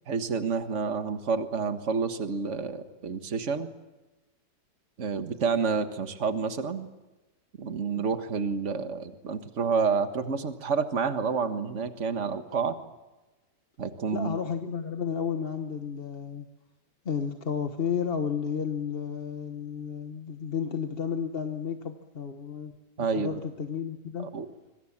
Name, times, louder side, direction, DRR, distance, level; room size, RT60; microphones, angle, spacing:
voice 1, 0.1-3.7 5.0-6.9 7.6-12.8 13.8-14.4 23.0-23.4 24.3-24.5, right 5 dB, 45° right, 8 dB, 1.8 m, -29 dB
voice 2, 14.1-16.5 17.0-22.7 23.0-24.3, left 7 dB, 35° left, 5 dB, 1.3 m, -32 dB
26.0 x 23.5 x 7.4 m, 1.1 s
omnidirectional pair, 1.8 m